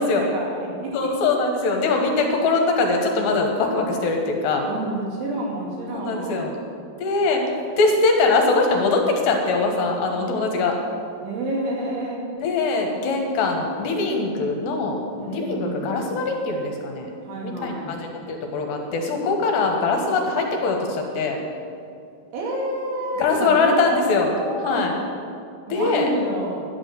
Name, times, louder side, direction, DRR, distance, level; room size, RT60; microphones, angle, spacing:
voice 1, 0.0-1.1 4.7-6.6 11.2-12.3 15.2-16.0 17.2-18.0 22.3-24.9 25.7-26.6, right 1 dB, 75° right, -4 dB, 4.9 m, -29 dB
voice 2, 0.9-4.7 5.9-6.5 7.0-10.8 12.4-17.1 17.4-21.4 23.2-24.9 25.7-26.1, left 3 dB, 70° left, 2 dB, 3.1 m, -22 dB
11.5 x 9.9 x 6.6 m, 2.4 s
omnidirectional pair, 5.4 m